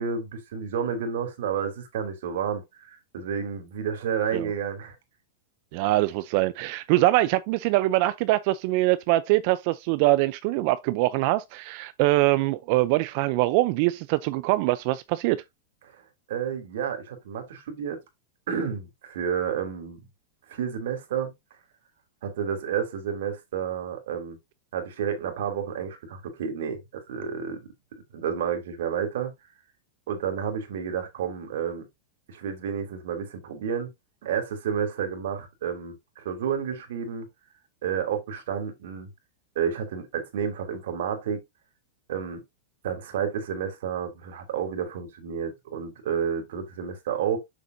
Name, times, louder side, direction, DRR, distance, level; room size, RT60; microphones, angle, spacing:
voice 1, 0.0-2.6 3.1-4.9 16.3-18.0 18.5-20.0 20.5-21.3 22.2-24.4 24.7-27.7 28.1-29.3 30.1-31.9 32.3-33.9 34.2-37.3 37.8-39.1 39.5-41.4 42.1-42.4 42.8-47.4, right 7 dB, 70° right, 2.9 m, -30 dB
voice 2, 5.7-15.4, right 18 dB, 50° right, 0.5 m, -23 dB
7.3 x 6.6 x 2.7 m
supercardioid pair, 140°, 0 cm